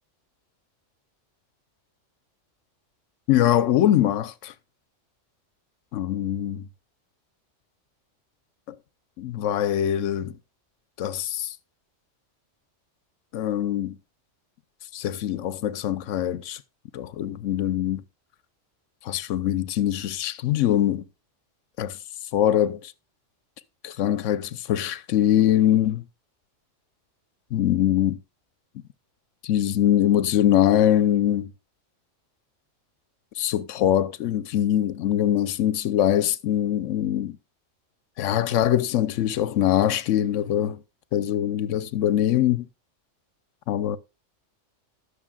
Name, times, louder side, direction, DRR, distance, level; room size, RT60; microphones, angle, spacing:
voice 1, 3.3-4.5 5.9-6.7 9.2-10.4 11.0-11.5 13.3-14.0 14.9-16.6 16.9-18.0 19.0-21.0 21.8-22.0 22.3-22.9 23.8-26.0 27.5-28.2 29.4-31.5 33.4-37.4 38.2-40.8 41.1-42.7 43.7-44.0, left 11 dB, 80° left, 1.0 m, -23 dB
18.5 x 6.6 x 2.3 m
omnidirectional pair, 1.3 m